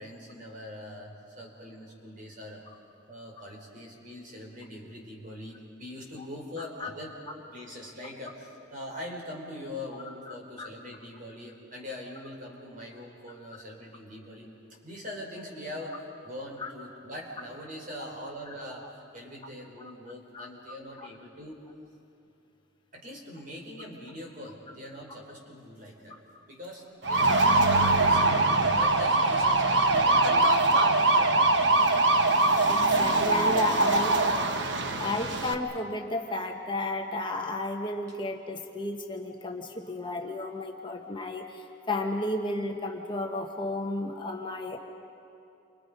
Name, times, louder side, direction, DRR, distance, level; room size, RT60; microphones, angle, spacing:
voice 1, 0.0-2.6 3.1-14.5 14.8-21.6 22.9-26.2 26.5-28.4 28.7-30.5 31.0-31.5, left 1 dB, 45° right, -1 dB, 4.5 m, -42 dB
voice 2, 6.6-6.9 10.3-10.7 16.6-16.7 20.3-20.5 32.6-34.2 35.0-44.8, left 2 dB, 25° left, 2 dB, 1.2 m, -33 dB
sound 1, 27.0-35.5, right 2 dB, 60° right, 1.2 m, -22 dB
29.5 x 25.0 x 5.4 m, 2.7 s
head